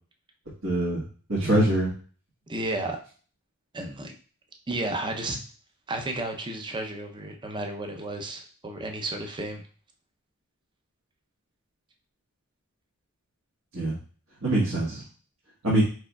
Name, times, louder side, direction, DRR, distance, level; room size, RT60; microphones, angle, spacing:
voice 1, 0.6-1.0 1.3-1.9 13.7-13.9 14.4-15.0 15.6-15.8, right 1 dB, 65° right, -7 dB, 1.4 m, -23 dB
voice 2, 2.5-3.0 3.7-4.1 4.7-5.4 5.9-9.6, right 2 dB, 20° right, 4 dB, 0.6 m, -32 dB
4.8 x 4.6 x 2.3 m, 0.41 s
head